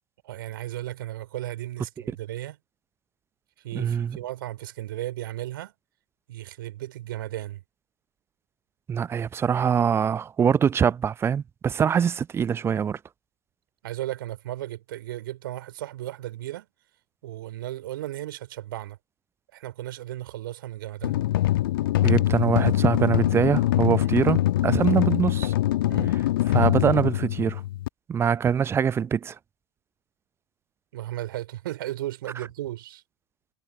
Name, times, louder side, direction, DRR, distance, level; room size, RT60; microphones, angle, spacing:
voice 1, 0.2-2.6 3.6-5.7 6.3-7.6 13.8-16.7 17.2-19.0 19.5-21.1 25.9-26.2 30.9-33.0, right 14 dB, 60° right, 4.8 m, -35 dB
voice 2, 3.7-4.2 8.9-13.0 22.0-25.5 26.5-27.6 28.1-29.4, right 7 dB, 20° right, 0.6 m, -23 dB
sound 1, 21.0-27.9, left 14 dB, 60° left, 1.3 m, -23 dB
figure-of-eight pair, 85°, 13 cm